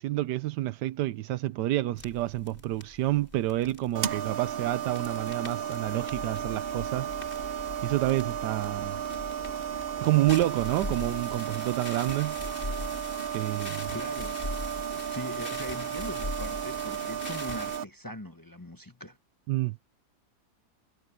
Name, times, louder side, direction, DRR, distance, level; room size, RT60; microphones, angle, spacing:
voice 1, 0.0-9.0 10.0-12.4 13.3-13.9 19.5-19.8, right 15 dB, 85° right, 1.2 m, -29 dB
sound 1, 2.0-17.8, left 2 dB, 30° left, 3.2 m, -42 dB
sound 2, 3.9-17.8, right 9 dB, 50° right, 0.7 m, -34 dB
voice 2, 13.9-14.4 15.1-19.2, left 1 dB, 15° left, 1.0 m, -40 dB
omnidirectional pair, 1.8 m